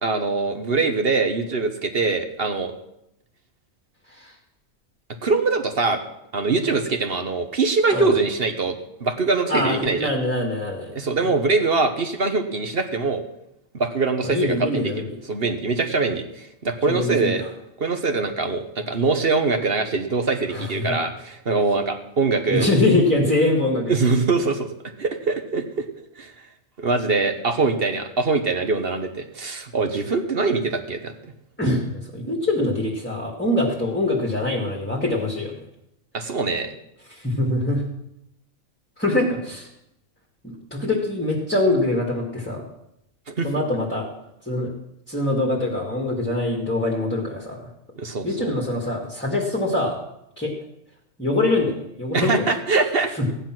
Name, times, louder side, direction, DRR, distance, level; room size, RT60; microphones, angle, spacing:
voice 1, 0.0-2.7 5.2-6.0 6.3-10.1 10.9-13.2 13.7-14.9 15.3-17.4 17.8-22.7 23.9-24.7 25.0-25.8 26.2-26.3 26.8-31.1 36.1-36.7 43.3-43.5 48.0-48.5 52.1-53.3, right 3 dB, 45° right, 7 dB, 1.3 m, -23 dB
voice 2, 9.5-10.9 14.2-15.1 16.9-17.5 20.5-20.9 22.5-23.9 31.6-35.6 37.1-37.8 39.0-39.7 40.4-42.6 43.4-44.1 44.5-44.7 45.1-47.7 48.2-50.0 50.4-50.5 51.2-52.6 53.2-53.3, left 2 dB, 10° left, -1 dB, 2.0 m, -23 dB
16.0 x 10.0 x 6.1 m, 0.82 s
omnidirectional pair, 1.5 m